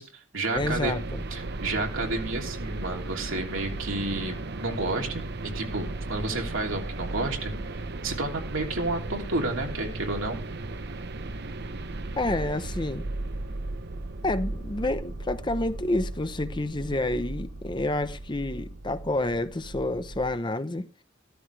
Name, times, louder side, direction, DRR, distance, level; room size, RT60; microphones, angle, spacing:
voice 1, 0.0-1.0 1.3-10.4, right 2 dB, 85° right, 3.2 m, -31 dB
voice 2, 0.5-1.2 12.2-13.1 14.2-20.9, left 2 dB, 25° left, 0.8 m, -29 dB
sound 1, 0.5-20.4, right 2 dB, 55° right, 0.8 m, -36 dB
14.5 x 13.5 x 3.3 m
head